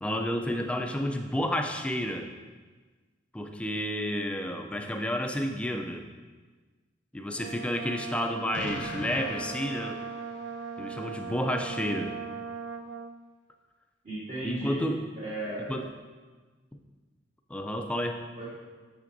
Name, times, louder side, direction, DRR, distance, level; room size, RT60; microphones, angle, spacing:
voice 1, 0.0-2.3 3.3-6.1 7.1-10.0 10.8-12.1 14.4-15.0 15.7-15.9 17.5-18.2, equal, 5° left, 5 dB, 0.3 m, -31 dB
Brass instrument, 7.4-13.2, right 5 dB, 75° right, 0.3 m, -39 dB
Explosion, 8.5-10.7, left 2 dB, 80° left, 0.6 m, -40 dB
voice 2, 14.0-14.9 15.2-15.7 18.4-18.5, right 2 dB, 40° right, -12 dB, 1.4 m, -35 dB
6.6 x 5.9 x 2.6 m, 1.4 s
head